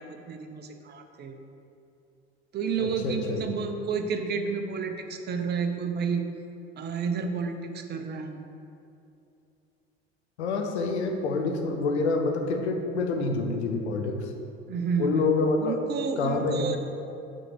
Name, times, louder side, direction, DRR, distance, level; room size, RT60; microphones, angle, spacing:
voice 1, 0.0-1.4 2.5-6.2 6.8-8.4 14.7-15.3 15.6-16.8, right 5 dB, 30° right, 5 dB, 0.7 m, -30 dB
voice 2, 2.8-3.4 10.4-14.3 15.0-15.7 16.2-16.8, left 3 dB, 80° left, 3 dB, 0.9 m, -27 dB
6.3 x 4.4 x 6.6 m, 2.7 s
figure-of-eight pair, 70°, 33 cm